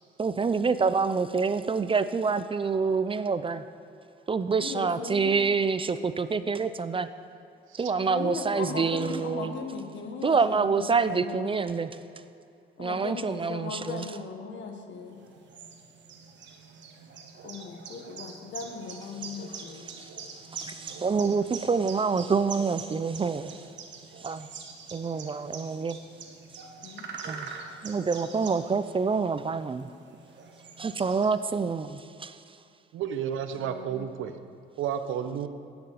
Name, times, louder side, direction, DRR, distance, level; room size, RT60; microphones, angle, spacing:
voice 1, 0.2-3.6 4.3-7.1 7.8-9.6 10.2-11.9 12.8-14.1 19.7-20.1 20.5-23.6 24.2-24.5 24.9-26.0 27.3-27.5 27.8-29.9 30.8-32.4, right 5 dB, 25° right, 13 dB, 0.5 m, -27 dB
voice 2, 4.6-5.4 8.1-11.6 12.8-15.2 17.4-19.9 26.8-27.1 33.5-34.1, left 5 dB, 70° left, 4 dB, 1.5 m, -38 dB
sound 1, 15.1-31.7, right 5 dB, 65° right, 1.2 m, -44 dB
voice 3, 32.9-34.3 34.8-35.5, right 9 dB, 85° right, 9 dB, 0.8 m, -31 dB
11.0 x 7.0 x 7.8 m, 2.6 s
cardioid pair, 90°, 20 cm